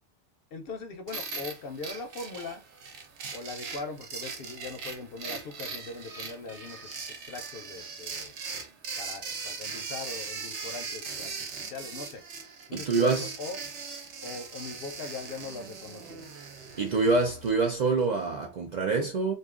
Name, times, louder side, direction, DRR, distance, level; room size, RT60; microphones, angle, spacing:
voice 1, 0.5-2.6 3.3-7.0 7.3-8.3 9.0-12.2 12.7-13.6 14.2-16.2, left 4 dB, 60° left, 0.7 m, -40 dB
sound 1, 1.1-18.1, right 5 dB, 75° right, 1.0 m, -40 dB
voice 2, 12.7-13.3 16.8-19.3, right 3 dB, 55° right, 0.5 m, -26 dB
2.6 x 2.3 x 3.6 m
omnidirectional pair, 1.2 m